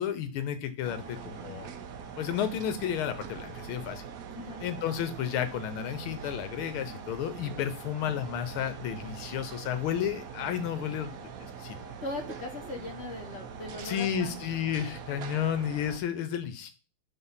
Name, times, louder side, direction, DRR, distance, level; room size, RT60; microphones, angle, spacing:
voice 1, 0.0-1.7 2.2-4.0 4.6-11.1 11.6-11.8 13.8-16.7, left 9 dB, 85° left, 9 dB, 1.6 m, -32 dB
sound 1, 0.8-16.0, right 6 dB, 75° right, 0.8 m, -43 dB
voice 2, 4.3-4.6 12.0-14.4, left 2 dB, 40° left, 2 dB, 1.0 m, -39 dB
5.6 x 4.0 x 5.4 m, 0.34 s
omnidirectional pair, 2.3 m